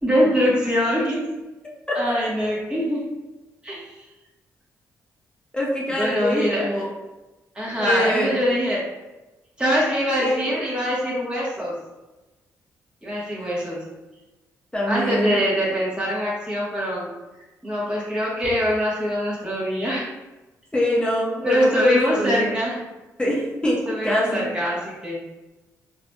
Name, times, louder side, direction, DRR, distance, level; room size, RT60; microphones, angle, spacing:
voice 1, 0.0-1.2 1.9-3.0 3.6-3.9 5.9-6.8 7.5-8.8 9.6-11.7 13.0-13.8 14.9-17.1 17.6-20.1 21.4-22.8 23.9-25.2, equal, 15° right, -6 dB, 1.3 m, -23 dB
voice 2, 5.5-6.9 7.8-8.4 10.2-10.4 14.7-15.4 20.7-22.5 23.2-24.5, equal, 15° left, -4 dB, 1.0 m, -24 dB
3.9 x 2.8 x 2.3 m, 1.1 s
supercardioid pair, 55°, 7 cm